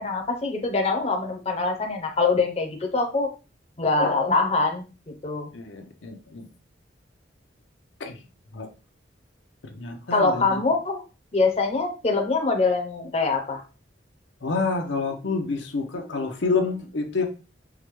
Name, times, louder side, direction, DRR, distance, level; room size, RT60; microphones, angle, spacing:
voice 1, 0.0-3.3 3.8-4.8 5.2-5.5 10.1-11.0 11.3-13.6, left 3 dB, 35° left, 2 dB, 0.6 m, -24 dB
voice 2, 5.5-6.4 8.0-8.2 8.5-8.7 9.7-10.6 14.4-17.3, left 4 dB, 85° left, 4 dB, 0.7 m, -28 dB
4.7 x 2.2 x 3.1 m, 0.32 s
head